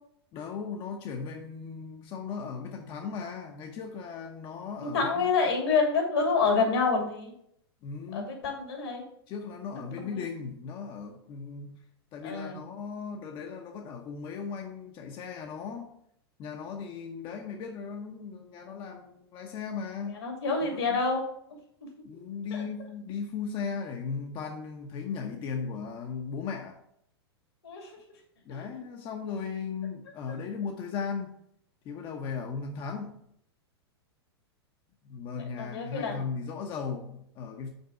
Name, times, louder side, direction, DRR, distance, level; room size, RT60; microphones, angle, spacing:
voice 1, 0.3-5.3 7.8-8.5 9.3-11.8 12.1-15.9 16.4-20.2 20.6-21.0 22.0-26.8 28.4-31.3 31.8-33.2 35.0-37.7, left 5 dB, 35° left, 0.9 m, -37 dB
voice 2, 4.8-7.3 8.1-9.0 9.7-10.2 12.2-12.6 20.0-21.2 22.5-22.6 27.6-27.9 28.5-28.7 35.6-36.2, left 4 dB, 75° left, 2.6 m, -28 dB
5.3 x 4.5 x 6.3 m
hypercardioid pair, 105°, 14 cm